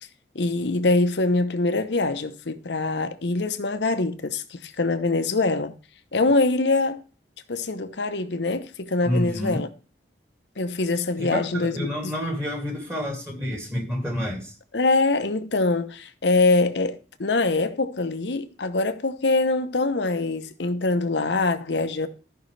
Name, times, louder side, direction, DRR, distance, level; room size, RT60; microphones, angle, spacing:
voice 1, 0.3-5.7 6.1-7.0 7.5-9.7 10.6-12.1 14.7-22.1, left 3 dB, 75° left, 0.8 m, -24 dB
voice 2, 9.0-9.7 11.2-14.5, equal, 15° right, 2.3 m, -29 dB
14.0 x 5.5 x 3.3 m
head